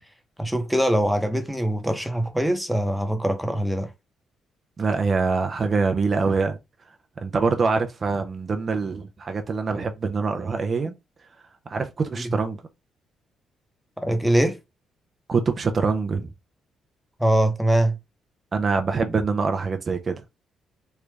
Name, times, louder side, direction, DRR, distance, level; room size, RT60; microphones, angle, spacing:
voice 1, 0.4-3.9 12.2-12.4 14.0-14.6 17.2-18.0, right 1 dB, ahead, 0.8 m, -22 dB
voice 2, 4.8-6.6 7.2-10.9 11.7-12.6 15.3-16.3 18.5-20.2, right 4 dB, 40° right, 0.5 m, -24 dB
3.3 x 2.4 x 3.3 m
cardioid pair, 90°, 0 cm